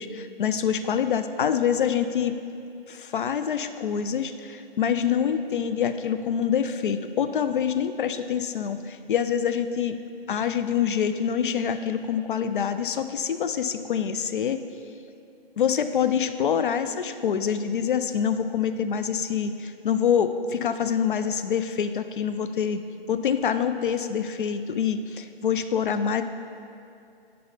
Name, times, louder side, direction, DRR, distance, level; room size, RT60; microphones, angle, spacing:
voice 1, 0.0-2.3 2.9-10.0 10.3-14.6 15.6-22.8 23.1-26.2, left 8 dB, 55° left, 10 dB, 0.4 m, -26 dB
5.4 x 5.2 x 5.6 m, 2.5 s
figure-of-eight pair, 140°, 31 cm